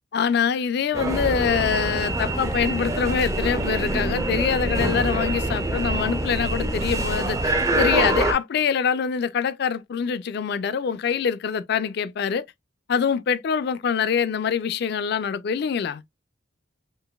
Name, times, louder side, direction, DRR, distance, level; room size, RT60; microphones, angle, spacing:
voice 1, 0.1-12.4 12.9-16.0, left 7 dB, 55° left, 0.3 m, -24 dB
sound 1, 0.9-8.3, right 1 dB, 15° right, 0.4 m, -25 dB
3.8 x 2.5 x 2.2 m
head